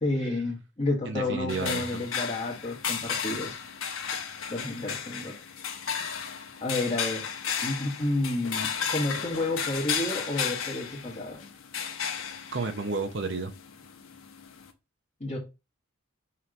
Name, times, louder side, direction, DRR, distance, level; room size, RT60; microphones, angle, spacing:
voice 1, 0.0-3.7 4.5-5.3 6.6-7.3 7.6-11.4 15.2-15.4, left 2 dB, 30° left, 1.8 m, -30 dB
voice 2, 1.0-2.0 12.5-13.5, right 3 dB, 60° right, 0.7 m, -31 dB
sound 1, 1.5-14.7, left 7 dB, 85° left, 1.1 m, -34 dB
5.8 x 3.2 x 5.1 m
head